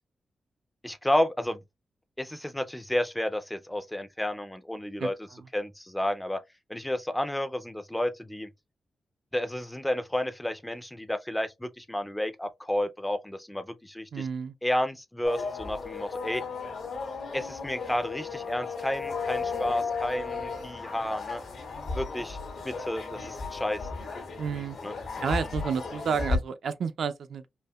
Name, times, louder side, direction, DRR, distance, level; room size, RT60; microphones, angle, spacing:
voice 1, 0.8-1.6 2.2-5.2 5.5-6.4 6.7-8.5 9.3-14.2 14.6-16.4 17.3-21.4 21.9-22.4 22.6-23.8 24.8-24.9, left 1 dB, 5° left, 0.4 m, -31 dB
voice 2, 5.0-5.4 14.1-14.5 24.4-24.8 25.2-27.5, right 6 dB, 75° right, 0.4 m, -31 dB
sound 1, 15.2-26.4, left 4 dB, 85° left, 1.7 m, -35 dB
5.3 x 2.1 x 2.2 m
wide cardioid pair, 165°, 0 cm